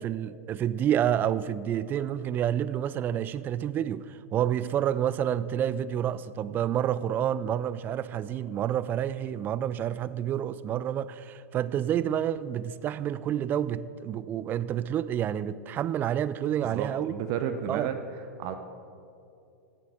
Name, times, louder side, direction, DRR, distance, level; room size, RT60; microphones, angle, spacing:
voice 1, 0.0-17.1 17.7-17.9, right 10 dB, 20° right, 0.4 m, -29 dB
voice 2, 16.6-18.0 18.4-18.6, right 9 dB, 40° right, 0.8 m, -32 dB
15.0 x 8.2 x 6.2 m
figure-of-eight pair, 95°, 9 cm